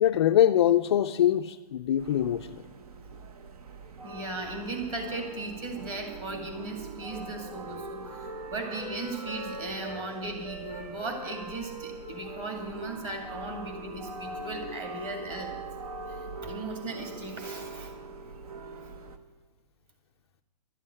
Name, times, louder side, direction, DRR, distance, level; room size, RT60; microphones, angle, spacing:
voice 1, 0.0-2.6, left 11 dB, 40° left, 0.4 m, -23 dB
sound 1, 2.0-19.2, right 3 dB, 60° right, 1.2 m, -43 dB
voice 2, 4.0-15.6 16.1-17.9 18.8-18.9, right 2 dB, 20° right, 2.1 m, -37 dB
Wind instrument woodwind instrument, 6.1-10.1 10.4-14.9, right 1 dB, 80° right, 3.0 m, -45 dB
12.0 x 7.3 x 9.7 m
hypercardioid pair, 160°, 21 cm